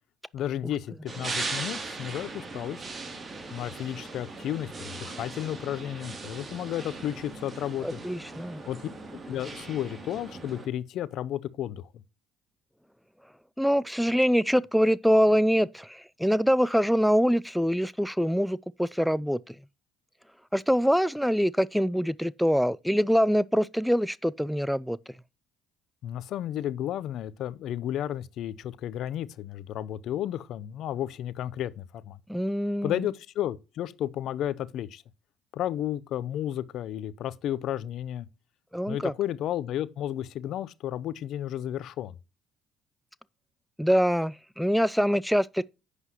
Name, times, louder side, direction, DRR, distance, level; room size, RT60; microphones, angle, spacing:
voice 1, 0.3-2.8 3.5-8.0 8.6-8.8 9.3-11.9 26.0-32.2 32.8-35.0 35.5-38.3 38.9-42.1, left 11 dB, 65° left, 0.6 m, -32 dB
sound 1, 1.1-10.7, right 3 dB, 35° right, 2.8 m, -39 dB
voice 2, 7.8-8.6 13.6-19.6 20.5-25.0 32.3-33.0 38.7-39.1 43.8-45.6, equal, ahead, 0.4 m, -24 dB
11.0 x 8.1 x 3.0 m
hypercardioid pair, 60°, 0 cm